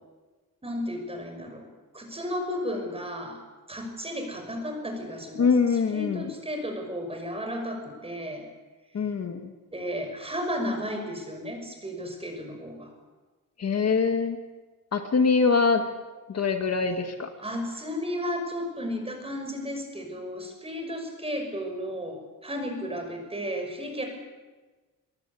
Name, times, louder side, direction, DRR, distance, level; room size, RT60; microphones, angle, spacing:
voice 1, 0.6-1.7 1.9-3.4 3.7-5.5 5.9-8.4 9.7-12.9 17.4-24.1, equal, 15° right, 4 dB, 5.8 m, -33 dB
voice 2, 5.4-6.3 8.9-9.5 13.6-14.4 14.9-15.8 16.3-17.3, left 5 dB, 45° left, 6 dB, 1.9 m, -23 dB
23.0 x 22.5 x 8.5 m, 1.3 s
wide cardioid pair, 155°, 35 cm